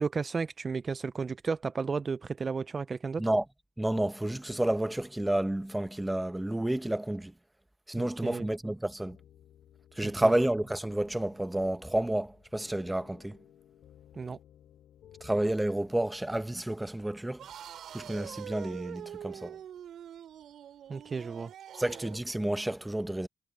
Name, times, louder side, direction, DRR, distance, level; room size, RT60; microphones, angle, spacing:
voice 1, 0.0-3.3 8.0-8.5 10.2-10.3 14.1-14.4 20.9-21.5, right 5 dB, 35° right, 0.4 m, -33 dB
voice 2, 3.8-7.3 7.9-9.2 10.0-13.4 15.2-17.4 17.9-19.5 21.8-23.3, right 1 dB, 10° right, 1.2 m, -30 dB
sound 1, 9.0-16.1, left 11 dB, 75° left, 4.6 m, -58 dB
sound 2, 17.4-22.3, right 10 dB, 70° right, 3.4 m, -45 dB
cardioid pair, 90°, 0 cm